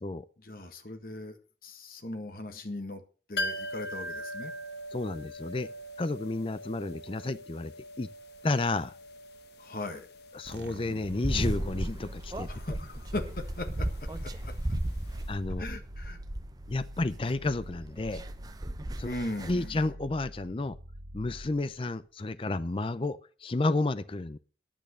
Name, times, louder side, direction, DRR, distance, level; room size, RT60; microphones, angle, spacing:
voice 1, 0.4-1.4 1.6-3.0 3.3-4.5 9.6-10.1 12.5-14.5 15.6-16.2 19.0-19.8, left 1 dB, 55° left, 1.6 m, -39 dB
sound 1, 3.4-15.0 15.2-15.3, equal, 70° left, 1.0 m, -42 dB
voice 2, 4.9-5.7 6.0-7.7 8.0-8.1 8.4-8.9 10.3-12.5 15.3-15.6 16.7-18.2 19.0-19.1 19.5-20.8 21.1-24.4, left 2 dB, 30° left, 0.5 m, -31 dB
sound 2, 10.4-21.9, equal, 80° right, 1.1 m, -46 dB
sound 3, 11.2-19.7, right 1 dB, 20° right, 0.7 m, -35 dB
10.5 x 9.0 x 6.5 m
head